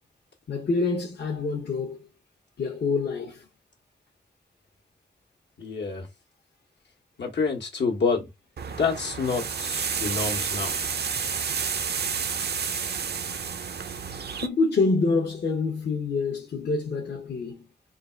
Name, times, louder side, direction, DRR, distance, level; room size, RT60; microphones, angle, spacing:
voice 1, 0.5-2.1 2.6-3.4 14.4-17.6, left 3 dB, 70° left, 1.0 m, -26 dB
voice 2, 5.6-6.1 7.2-8.3 8.7-10.7, left 5 dB, 85° left, 1.4 m, -28 dB
sound 1, 8.6-14.5, right 6 dB, 70° right, 0.6 m, -30 dB
3.8 x 2.4 x 4.4 m
wide cardioid pair, 85°, 18 cm